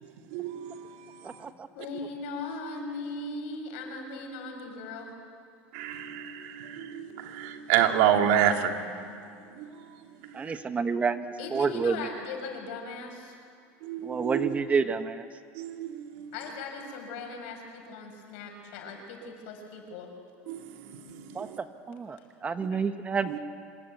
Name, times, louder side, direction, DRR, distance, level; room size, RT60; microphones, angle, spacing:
voice 1, 0.0-1.1 5.7-9.2 9.5-10.6 13.8-14.6 15.5-16.3 20.5-21.6 23.3-23.4, right 9 dB, 75° right, 4 dB, 2.5 m, -29 dB
voice 2, 1.7-5.1 11.4-13.4 16.3-20.1 22.2-22.3 22.7-22.8, left 3 dB, 75° left, 3 dB, 6.5 m, -38 dB
voice 3, 10.3-11.9 14.0-15.2 21.3-21.5 21.9-23.4, right 5 dB, 20° right, 9 dB, 1.2 m, -29 dB
26.0 x 22.5 x 9.3 m, 2.3 s
supercardioid pair, 120°, 6 cm